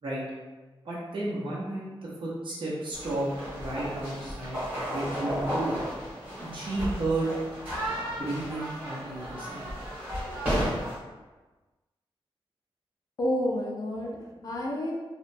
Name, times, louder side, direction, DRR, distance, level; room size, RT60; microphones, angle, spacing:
voice 1, 0.8-5.8 6.4-7.3 8.1-9.7, right 2 dB, 60° right, -8 dB, 0.6 m, -33 dB
sound 1, 2.9-11.0, equal, 20° right, 1.4 m, -33 dB
voice 2, 13.2-14.9, left 1 dB, 40° left, -2 dB, 0.4 m, -30 dB
2.8 x 2.1 x 2.5 m, 1.2 s
wide cardioid pair, 175°, 10 cm